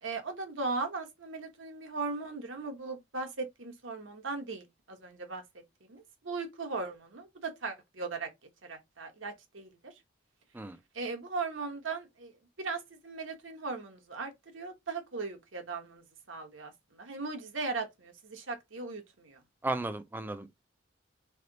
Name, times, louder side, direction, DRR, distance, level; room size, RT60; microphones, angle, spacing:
voice 1, 0.0-5.4 5.9-8.3 8.6-9.9 10.9-19.4, right 3 dB, 80° right, 1.2 m, -38 dB
voice 2, 19.6-20.6, right 2 dB, 10° right, 0.4 m, -35 dB
3.4 x 3.4 x 3.9 m
head